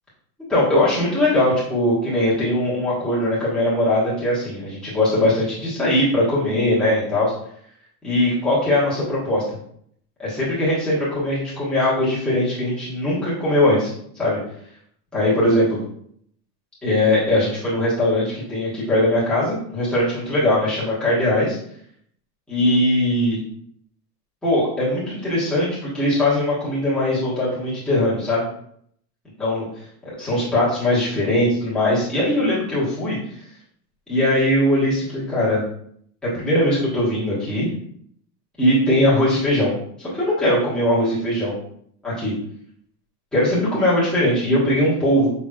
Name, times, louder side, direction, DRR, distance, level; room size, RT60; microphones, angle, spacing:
voice 1, 0.5-7.3 8.0-9.4 10.2-14.4 15.1-15.8 16.8-21.6 22.5-23.4 24.4-28.5 29.4-29.7 30.2-33.2 34.1-35.6 36.2-37.7 38.6-39.7 40.1-41.5 42.0-42.3 43.3-45.3, left 1 dB, ahead, -11 dB, 1.3 m, -20 dB
6.0 x 3.5 x 2.3 m, 0.67 s
supercardioid pair, 175°, 47 cm